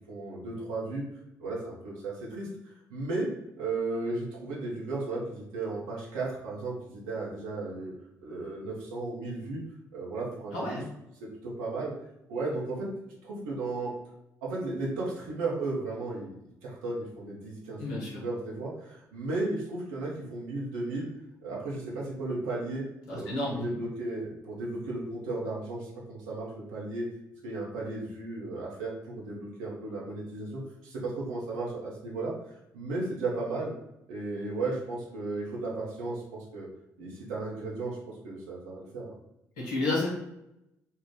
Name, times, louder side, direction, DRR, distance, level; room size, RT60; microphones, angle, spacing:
voice 1, 0.1-1.1 1.4-3.3 3.6-7.9 8.2-9.6 9.9-10.8 11.2-11.9 12.3-12.9 13.2-13.9 14.4-16.3 16.6-21.1 21.4-27.1 27.4-33.7 34.1-36.7 37.0-39.1, right 2 dB, 70° right, -4 dB, 1.0 m, -35 dB
voice 2, 10.5-10.9 17.8-18.2 23.1-23.8 39.6-40.1, left 2 dB, 70° left, -5 dB, 1.3 m, -31 dB
4.2 x 2.5 x 3.8 m, 0.85 s
figure-of-eight pair, 40°, 9 cm